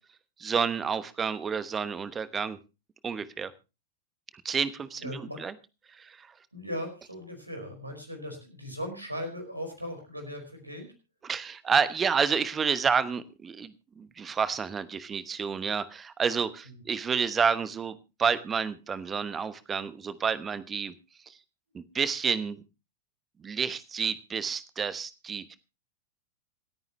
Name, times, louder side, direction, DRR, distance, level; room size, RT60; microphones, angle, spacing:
voice 1, 0.4-2.6 3.0-3.5 4.4-5.5 5.9-6.3 11.2-20.9 21.3-21.4 21.7-22.6 23.4-25.6, right 6 dB, 20° right, 16 dB, 1.0 m, -29 dB
voice 2, 5.0-5.4 6.5-10.9 16.7-16.8, equal, 85° right, 4 dB, 5.0 m, -38 dB
27.0 x 9.2 x 3.0 m, 0.28 s
figure-of-eight pair, 90°, 0 cm